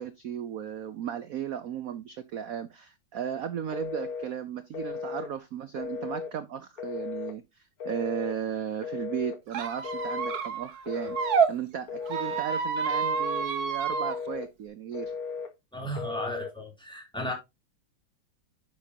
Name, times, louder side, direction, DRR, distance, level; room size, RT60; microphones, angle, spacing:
voice 1, 0.0-15.1, right 9 dB, 85° right, 0.7 m, -35 dB
Telephone, 3.7-4.3 4.7-5.3 5.8-6.3 6.8-7.4 7.8-8.4 8.8-9.4 9.8-10.4 10.9-11.4 11.9-12.5 12.9-13.5 13.9-14.5 14.9-15.5 15.9-16.5, left 5 dB, 50° left, 1.4 m, -36 dB
Squeak, 9.5-11.5 12.0-14.2, right 6 dB, 50° right, 1.5 m, -29 dB
voice 2, 15.7-17.3, equal, ahead, 3.0 m, -35 dB
9.7 x 6.6 x 2.8 m
omnidirectional pair, 2.3 m